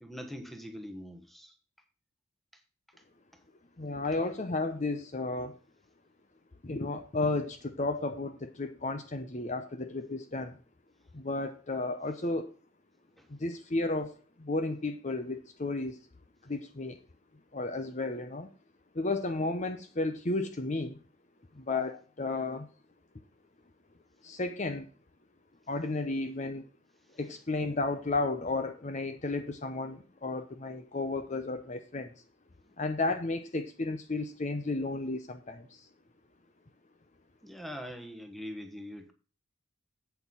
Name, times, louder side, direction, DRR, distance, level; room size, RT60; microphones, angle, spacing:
voice 1, 0.0-1.5 13.2-13.3 37.4-39.1, equal, ahead, 1.2 m, -43 dB
voice 2, 3.8-5.6 6.6-10.6 11.1-12.6 13.3-14.1 14.4-16.0 16.4-17.0 17.5-18.5 18.9-21.0 21.5-22.7 24.2-24.9 25.7-26.7 27.1-32.1 32.8-35.9, left 2 dB, 35° left, 0.7 m, -33 dB
8.1 x 6.9 x 5.5 m
head